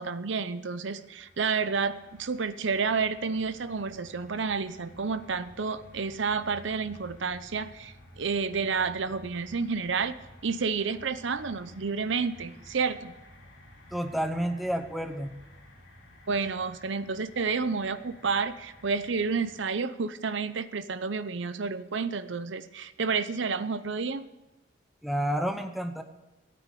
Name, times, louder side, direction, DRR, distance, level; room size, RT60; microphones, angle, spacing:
voice 1, 0.0-10.1 10.4-13.1 16.3-24.2, right 5 dB, 65° right, 13 dB, 0.7 m, -30 dB
sound 1, 0.9-19.7, left 1 dB, 60° left, 2.7 m, -53 dB
voice 2, 13.9-15.3 25.0-26.0, equal, ahead, 6 dB, 0.8 m, -30 dB
14.0 x 9.4 x 6.8 m, 0.98 s
head